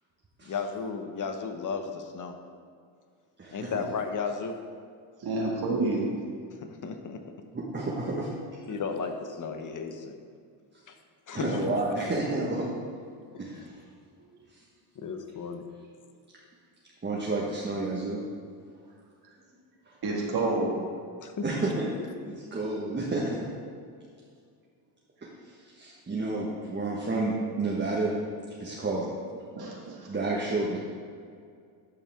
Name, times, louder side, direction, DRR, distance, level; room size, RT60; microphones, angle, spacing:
voice 1, 0.4-2.4 3.5-4.6 6.6-7.2 8.7-10.2 10.9-11.0 11.3-11.6 13.5-13.7 15.0-15.7 21.2-21.5, left 5 dB, 40° left, 6 dB, 1.1 m, -34 dB
voice 2, 3.4-3.9 7.5-8.3 11.3-12.7 13.4-13.8 17.0-18.2 19.9-20.0 21.4-21.9 22.2-23.4 25.2-28.1 28.6-29.1 30.1-30.8, right 2 dB, 20° right, -4 dB, 1.5 m, -30 dB
voice 3, 5.2-6.0 20.0-20.8 29.5-30.1, right 2 dB, 50° right, -2 dB, 1.9 m, -28 dB
11.5 x 5.5 x 3.6 m, 2.2 s
supercardioid pair, 85°, 49 cm